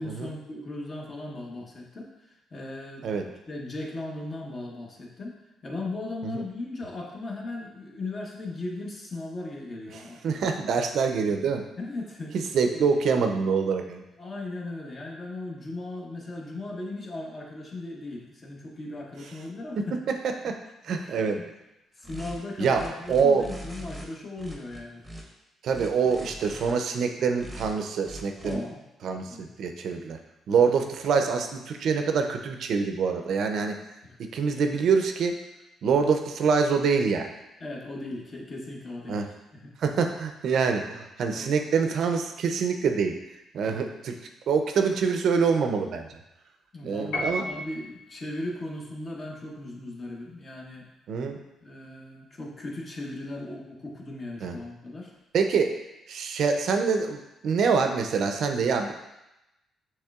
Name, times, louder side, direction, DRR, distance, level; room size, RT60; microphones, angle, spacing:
voice 1, 0.0-3.2 3.5-10.4 11.8-12.3 12.7-12.9 14.2-20.0 21.0-21.5 22.0-25.0 28.4-28.8 29.2-29.5 30.6-30.8 34.0-34.2 37.6-39.2 39.5-39.7 41.3-41.6 43.6-43.9 46.7-50.9 51.6-55.1, left 2 dB, 40° left, -1 dB, 1.0 m, -37 dB
voice 2, 10.2-11.6 12.5-14.0 20.4-20.5 20.8-21.4 22.6-22.8 23.1-23.5 25.6-28.6 29.0-30.2 30.5-33.8 34.3-35.3 35.8-37.3 39.1-39.3 39.8-43.2 43.5-44.2 44.5-46.2 46.8-47.5 51.1-51.4 54.4-54.6 55.3-55.7 56.1-58.9, right 5 dB, 70° right, 5 dB, 0.5 m, -25 dB
sound 1, 22.0-22.4 22.7-24.1 24.4-25.2 25.7-26.7 27.4-27.7 28.0-28.6, equal, ahead, 0.9 m, -41 dB
Piano, 47.1-48.0, left 1 dB, 90° left, 0.7 m, -32 dB
6.3 x 3.1 x 2.4 m, 0.93 s
cardioid pair, 90°, 0 cm